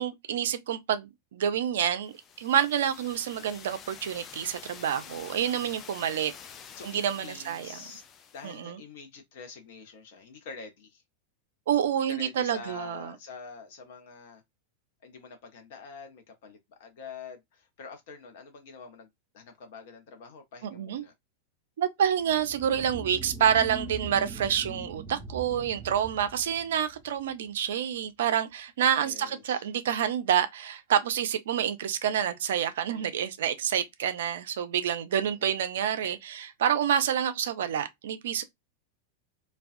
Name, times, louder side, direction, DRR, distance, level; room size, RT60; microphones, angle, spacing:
voice 1, 0.0-6.3 6.8-7.8 8.4-8.8 11.7-13.1 20.6-21.0 21.8-38.4, right 9 dB, 60° right, 0.3 m, -28 dB
sound 1, 2.0-8.6, left 7 dB, 30° left, 0.3 m, -48 dB
voice 2, 4.9-5.8 6.7-8.0 8.3-11.0 12.1-14.4 15.0-21.1 25.7-25.9 29.0-29.7 32.9-33.3 35.1-35.4, left 5 dB, 55° left, 0.7 m, -46 dB
sound 2, 22.2-27.2, right 3 dB, ahead, 0.8 m, -42 dB
2.3 x 2.2 x 2.5 m
figure-of-eight pair, 90°, 0 cm